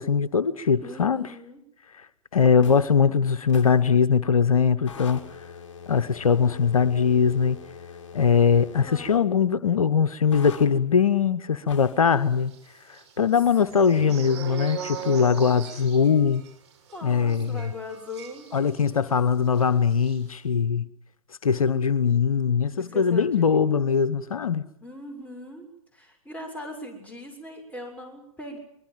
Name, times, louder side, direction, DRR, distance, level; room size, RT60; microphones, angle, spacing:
voice 1, 0.0-1.3 1.9-2.1 2.3-5.4 5.9-7.6 8.1-12.5 12.9-16.4 17.0-17.7 18.5-20.9 21.4-24.7, left 6 dB, 80° left, 1.1 m, -21 dB
voice 2, 0.8-1.6 8.7-9.1 13.9-14.3 16.9-18.5 22.8-23.8 24.8-25.7 25.9-28.6, left 2 dB, 10° left, 6.7 m, -40 dB
sound 1, 2.6-2.9 3.5-3.8 4.9-9.2 10.3-10.7 11.7-12.1, left 6 dB, 55° left, 2.7 m, -43 dB
sound 2, 12.4-19.2 19.4-19.6 19.9-20.2, right 8 dB, 50° right, 6.1 m, -40 dB
24.5 x 21.5 x 7.6 m
hypercardioid pair, 125°, 18 cm